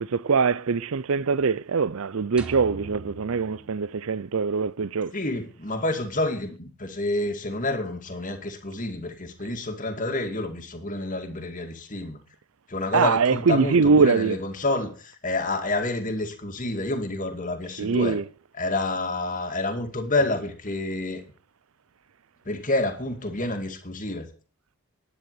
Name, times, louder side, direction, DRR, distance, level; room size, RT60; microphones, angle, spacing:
voice 1, 0.0-5.1 12.9-14.4 17.8-18.2, right 5 dB, 65° right, 0.5 m, -22 dB
sound 1, 2.4-4.7, right 3 dB, 5° right, 1.5 m, -42 dB
voice 2, 5.1-12.2 12.7-18.2 18.5-21.2 22.5-24.3, left 2 dB, 35° left, 2.2 m, -29 dB
11.0 x 10.0 x 6.8 m
head